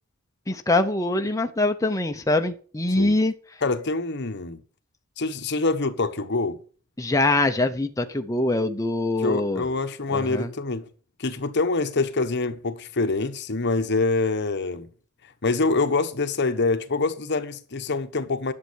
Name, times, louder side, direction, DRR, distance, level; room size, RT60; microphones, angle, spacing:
voice 1, 0.5-3.3 7.0-9.6 10.1-10.5, left 2 dB, 15° left, 0.8 m, -23 dB
voice 2, 3.6-4.6 5.2-6.6 9.2-10.9 11.2-14.9 15.4-18.5, left 3 dB, 55° left, 1.1 m, -25 dB
11.0 x 7.5 x 6.3 m
head